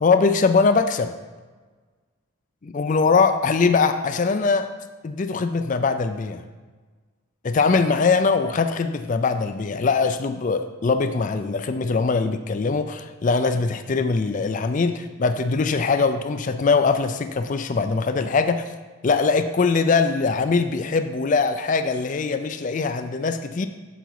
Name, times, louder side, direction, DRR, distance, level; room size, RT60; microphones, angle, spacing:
voice 1, 0.0-1.1 2.6-4.7 5.0-6.4 7.4-18.7 19.0-23.7, left 4 dB, 40° left, 9 dB, 0.4 m, -22 dB
7.9 x 6.8 x 4.7 m, 1.3 s
head